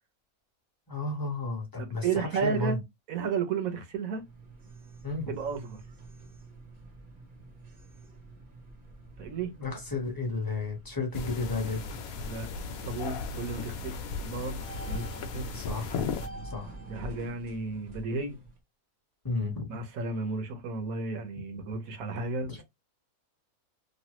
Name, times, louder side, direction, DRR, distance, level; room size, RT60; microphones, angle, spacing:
voice 1, 0.9-2.8 5.0-5.3 9.6-11.8 15.5-16.0 16.4-16.7 19.2-19.7 22.5-22.6, left 3 dB, 15° left, 1.0 m, -32 dB
voice 2, 1.8-2.8 3.1-4.2 5.4-5.8 9.2-9.5 12.3-14.0 14.2-15.5 16.9-18.4 19.7-22.6, right 5 dB, 70° right, 1.2 m, -33 dB
sound 1, 4.1-18.6, right 2 dB, 40° right, 0.9 m, -48 dB
sound 2, 11.1-16.3, left 4 dB, 80° left, 1.1 m, -36 dB
3.1 x 2.3 x 2.9 m
omnidirectional pair, 1.5 m